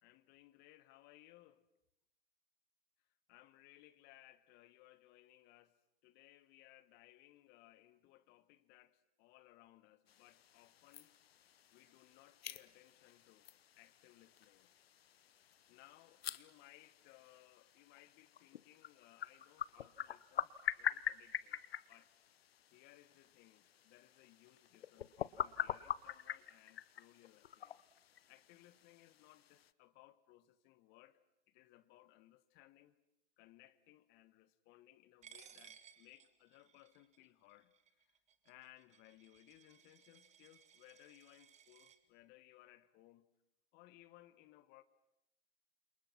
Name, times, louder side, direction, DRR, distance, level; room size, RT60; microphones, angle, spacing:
voice 1, 0.0-1.6 3.3-5.8 6.0-11.2 11.7-14.7 15.7-21.6 21.9-22.1 22.7-27.8 28.3-31.2 31.5-33.0 33.4-38.2 38.4-43.3 43.7-44.8, left 16 dB, 30° left, 1.4 m, -64 dB
sound 1, 10.1-29.7, left 10 dB, 70° left, 1.1 m, -46 dB
Coin (dropping), 35.2-42.0, right 9 dB, 20° right, 2.1 m, -62 dB
29.5 x 27.5 x 6.0 m
hypercardioid pair, 120°, 32 cm